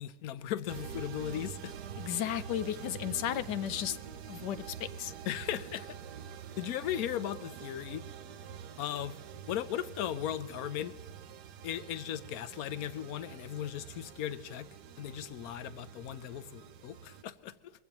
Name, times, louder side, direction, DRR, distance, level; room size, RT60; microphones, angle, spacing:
voice 1, 0.0-1.7 5.3-6.0 6.6-8.0 8.8-9.2 9.5-10.9 11.6-14.7 15.0-17.7, left 11 dB, 70° left, 1.0 m, -37 dB
sound 1, 0.7-17.2, right 8 dB, 80° right, 1.4 m, -46 dB
voice 2, 2.0-4.0 4.3-5.1, left 11 dB, 85° left, 1.3 m, -34 dB
23.0 x 15.5 x 3.0 m
omnidirectional pair, 1.8 m